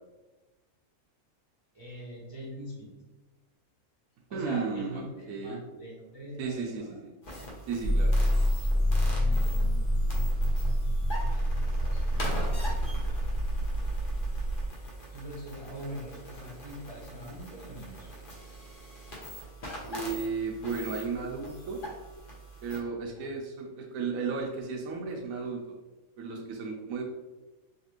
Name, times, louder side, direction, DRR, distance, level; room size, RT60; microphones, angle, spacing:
voice 1, 1.7-2.9 4.3-7.0 9.0-9.8 10.4-10.7 11.2-12.7 14.2-14.5 15.1-18.1 23.0-23.3, equal, 25° right, -8 dB, 0.6 m, -43 dB
voice 2, 4.3-5.0 5.3-5.6 6.4-7.1 7.7-8.1 19.8-21.8 22.6-25.6 26.2-27.0, right 5 dB, 70° right, -1 dB, 0.9 m, -34 dB
sound 1, 7.2-22.8, equal, 45° left, 0.8 m, -43 dB
sound 2, 7.8-14.7, equal, 75° left, 1.1 m, -27 dB
3.3 x 2.8 x 2.9 m, 1.1 s
omnidirectional pair, 1.6 m